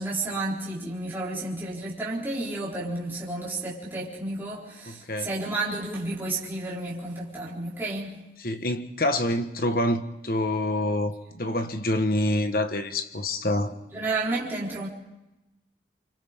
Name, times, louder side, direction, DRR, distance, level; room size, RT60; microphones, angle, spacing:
voice 1, 0.0-8.2 13.9-14.9, right 2 dB, 10° right, 4.1 m, -31 dB
voice 2, 4.9-5.3 8.4-13.7, left 1 dB, 55° left, 1.4 m, -26 dB
29.0 x 25.0 x 3.7 m
head